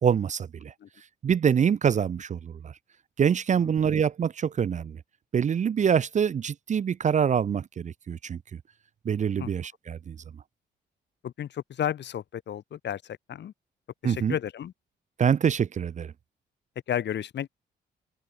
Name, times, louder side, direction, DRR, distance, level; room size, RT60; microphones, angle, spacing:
voice 1, 0.0-0.7 1.2-2.7 3.2-5.0 5.3-8.4 9.1-10.2 14.0-14.4 15.2-16.1, right 7 dB, 40° right, 0.5 m, -25 dB
voice 2, 11.2-13.5 14.0-14.7 16.9-17.5, left 10 dB, 70° left, 3.6 m, -32 dB
open air
cardioid pair, 75°, 19 cm